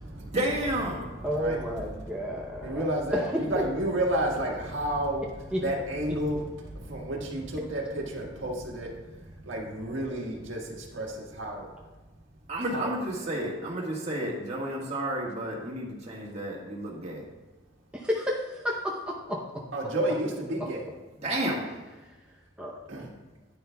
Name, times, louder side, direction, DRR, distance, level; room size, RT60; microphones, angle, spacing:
voice 1, 0.1-1.1 12.5-17.2 21.2-21.6, right 1 dB, 30° right, -3 dB, 1.6 m, -31 dB
voice 2, 1.2-3.4 5.5-5.6 6.1-6.2 17.9-19.6 22.6-23.1, equal, 5° right, -3 dB, 0.7 m, -32 dB
voice 3, 2.6-5.2 5.6-6.4 6.7-8.9 9.4-11.7 12.7-12.9 19.7-20.8 22.9-23.1, right 1 dB, 80° right, -1 dB, 1.6 m, -31 dB
10.0 x 9.6 x 2.3 m, 1.2 s
head